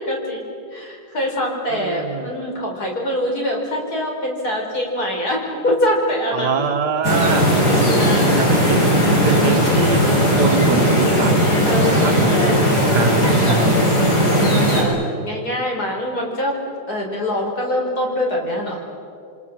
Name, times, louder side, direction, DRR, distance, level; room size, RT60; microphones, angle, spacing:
voice 1, 0.0-6.6 7.9-8.6 11.7-12.7 13.0-13.8 14.4-16.6 16.9-18.9, left 1 dB, 60° left, 0 dB, 5.4 m, -24 dB
voice 2, 1.7-2.3 6.3-11.4 11.8-13.9, right 5 dB, 70° right, 7 dB, 1.9 m, -24 dB
sound 1, 7.0-14.8, equal, 90° left, 6.3 m, -17 dB
28.5 x 24.5 x 7.5 m, 2.4 s
omnidirectional pair, 1.9 m